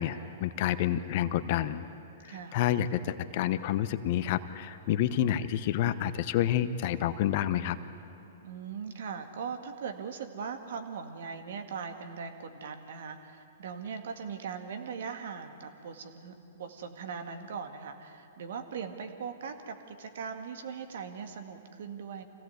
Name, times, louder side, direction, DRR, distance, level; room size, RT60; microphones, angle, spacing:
voice 1, 0.0-1.8 2.2-7.8, left 11 dB, 50° left, 12 dB, 1.0 m, -29 dB
voice 2, 2.3-2.6 8.4-22.2, right 6 dB, 65° right, 6 dB, 1.9 m, -40 dB
25.5 x 16.5 x 8.1 m, 3.0 s
hypercardioid pair, 115°, 0 cm